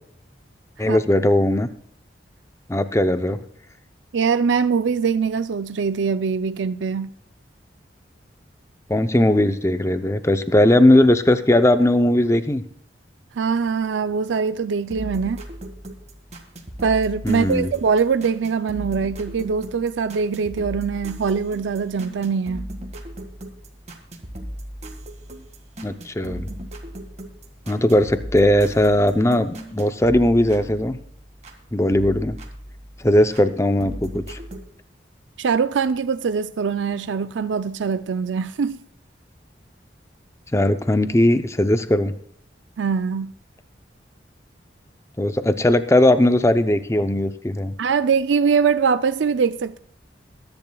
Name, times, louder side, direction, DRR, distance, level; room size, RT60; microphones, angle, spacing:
voice 1, 0.8-1.7 2.7-3.4 8.9-12.6 17.2-17.7 25.8-26.5 27.7-31.0 31.7-32.4 33.0-34.4 40.5-42.1 45.2-47.7, left 1 dB, 15° left, 0.6 m, -18 dB
voice 2, 4.1-7.1 13.4-15.4 16.8-22.6 35.4-38.8 42.8-43.3 47.8-49.8, right 5 dB, 85° right, 0.4 m, -22 dB
sound 1, 14.9-31.6 31.9-33.5 33.8-34.6, equal, 35° right, 1.8 m, -37 dB
21.5 x 10.5 x 2.3 m
head